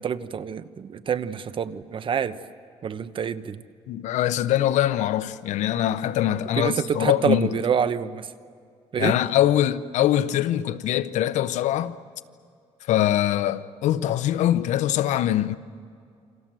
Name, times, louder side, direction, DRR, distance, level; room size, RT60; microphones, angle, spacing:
voice 1, 0.0-2.4 2.8-3.6 6.6-8.3 8.9-9.1, right 7 dB, 45° right, 1.1 m, -27 dB
voice 2, 3.9-7.5 9.0-11.9 12.9-15.5, left 12 dB, 85° left, 0.9 m, -23 dB
29.0 x 26.0 x 7.7 m
cardioid pair, 110°, 12 cm